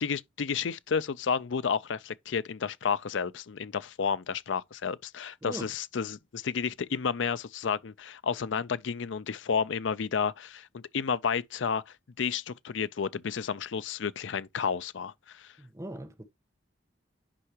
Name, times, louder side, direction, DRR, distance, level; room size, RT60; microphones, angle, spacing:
voice 1, 0.0-15.5, left 6 dB, 70° left, 0.5 m, -31 dB
voice 2, 15.6-16.2, right 1 dB, 15° right, 1.0 m, -40 dB
9.8 x 5.6 x 2.9 m
head